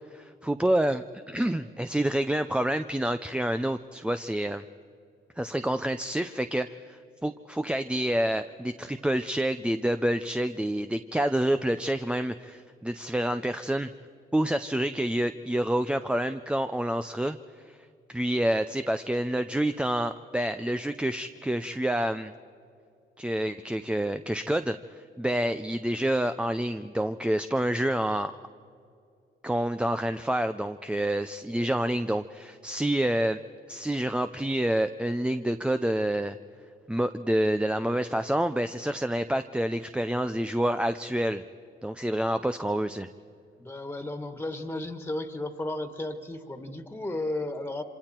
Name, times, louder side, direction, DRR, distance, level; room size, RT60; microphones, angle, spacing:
voice 1, 0.1-4.6 5.4-13.9 14.3-17.4 17.7-17.8 18.1-22.3 23.2-24.8 25.2-28.3 29.4-33.4 33.7-36.4 36.9-41.4 41.8-43.1, right 1 dB, 5° right, 10 dB, 0.5 m, -28 dB
voice 2, 43.6-47.8, left 1 dB, 10° left, 7 dB, 1.8 m, -34 dB
27.0 x 25.5 x 4.5 m, 2.5 s
cardioid pair, 90°, 20 cm